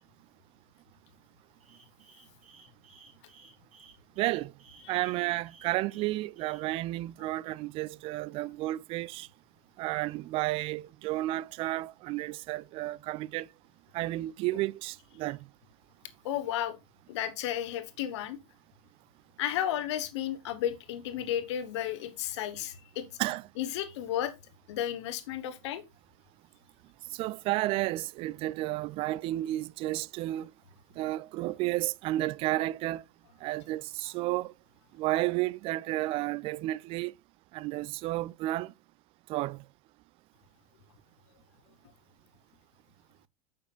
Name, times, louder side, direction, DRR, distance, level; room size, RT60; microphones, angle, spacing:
sound 1, 1.6-6.6, right 4 dB, 70° right, 4.0 m, -57 dB
voice 1, 4.2-4.5 4.9-9.3 9.8-13.5 13.9-15.4 23.2-23.4 27.1-30.5 31.0-33.0 33.4-34.5 35.0-37.1 37.5-38.7 39.3-39.6, right 17 dB, 35° right, 0.3 m, -32 dB
voice 2, 16.2-16.8 17.1-18.4 19.4-23.1 23.6-24.3 24.7-25.8, left 11 dB, 55° left, 1.3 m, -33 dB
9.2 x 7.0 x 2.4 m
figure-of-eight pair, 80°, 18 cm